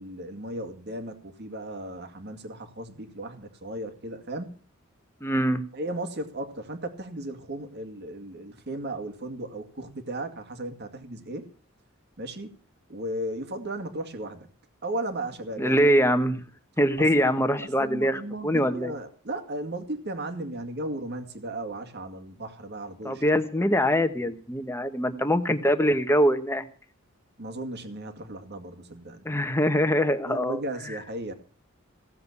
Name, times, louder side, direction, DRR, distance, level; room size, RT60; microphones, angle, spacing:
voice 1, 0.0-4.5 5.7-11.5 12.2-12.5 12.9-14.5 14.8-16.0 17.0-17.3 17.6-23.2 24.2-24.3 27.4-29.2 30.2-31.3, right 1 dB, 50° right, 6 dB, 2.2 m, -35 dB
voice 2, 5.2-5.6 15.6-16.4 16.8-18.9 23.0-26.7 29.2-30.6, equal, 10° left, 9 dB, 1.2 m, -23 dB
17.0 x 7.8 x 8.3 m, 0.41 s
head